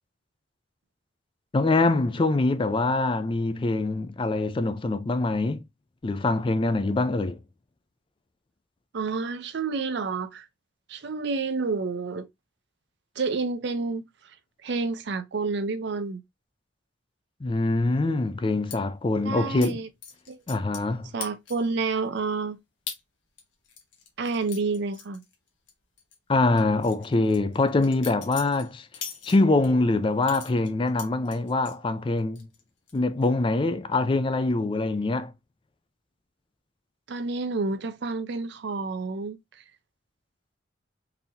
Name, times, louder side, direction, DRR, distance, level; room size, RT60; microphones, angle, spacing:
voice 1, 1.5-5.6 6.0-7.4 17.4-19.8 20.5-21.1 26.3-28.9 29.2-32.5 32.9-35.3, left 2 dB, 25° left, 0.4 m, -24 dB
voice 2, 8.9-10.5 10.9-12.3 13.2-14.0 14.6-16.2 19.2-19.9 20.3-20.4 21.1-22.6 24.2-25.2 37.1-39.4, right 4 dB, 65° right, 0.5 m, -29 dB
sound 1, 18.7-18.8 19.6-19.7 20.0-20.9 21.2-21.7 22.2-22.3 22.9-23.0 23.4-25.7 26.0-26.2 26.6-29.7 30.2-31.8 32.2-32.6 32.9-33.3, left 7 dB, 70° left, 1.0 m, -41 dB
4.0 x 2.8 x 2.5 m
head